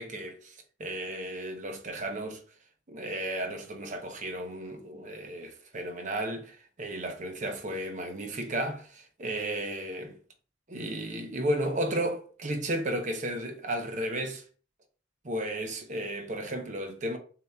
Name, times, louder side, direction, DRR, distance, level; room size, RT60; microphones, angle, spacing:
voice 1, 0.0-2.4 2.9-10.2 10.7-14.4 15.2-17.2, right 1 dB, 40° right, 0.7 m, -34 dB
6.8 x 2.9 x 2.3 m
head